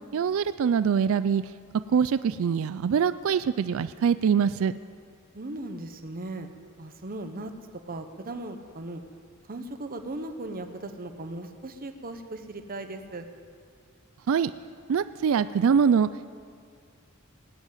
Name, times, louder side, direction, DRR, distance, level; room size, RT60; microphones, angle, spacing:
voice 1, 0.1-1.4 1.9-4.7 14.3-14.5 14.9-16.1, right 7 dB, 65° right, 14 dB, 0.4 m, -23 dB
voice 2, 5.3-6.5 6.8-7.5 7.8-9.0 9.5-13.3, right 2 dB, 45° right, 7 dB, 0.9 m, -37 dB
17.5 x 8.2 x 9.1 m, 2.1 s
head